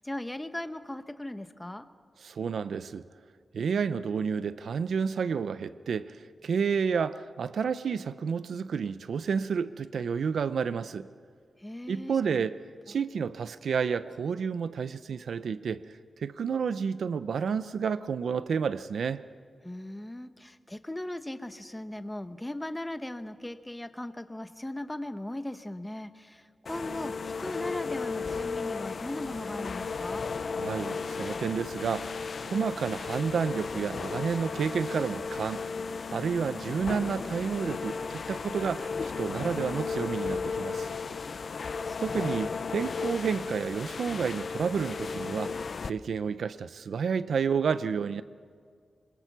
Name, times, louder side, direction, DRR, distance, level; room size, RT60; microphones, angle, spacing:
voice 1, 0.0-1.9 11.6-12.4 19.6-30.3 41.4-42.4, left 1 dB, 10° left, 10 dB, 1.0 m, -38 dB
voice 2, 2.2-3.0 3.5-11.1 11.9-12.6 12.9-15.9 16.2-19.2 30.6-35.6 36.1-40.9 42.0-45.5 45.8-48.2, right 6 dB, 80° right, 13 dB, 0.6 m, -30 dB
sound 1, 26.6-45.9, left 5 dB, 50° left, 0.6 m, -35 dB
26.5 x 22.5 x 6.1 m, 2.1 s
wide cardioid pair, 140°, 0 cm